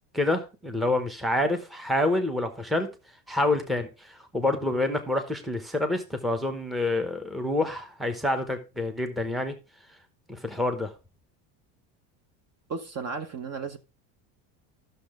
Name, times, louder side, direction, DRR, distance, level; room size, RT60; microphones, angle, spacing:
voice 1, 0.1-2.9 3.3-9.5 10.3-10.9, left 2 dB, ahead, 0.9 m, -27 dB
voice 2, 12.7-13.8, right 5 dB, 35° right, 1.0 m, -34 dB
11.5 x 6.7 x 3.7 m
cardioid pair, 130°, 43 cm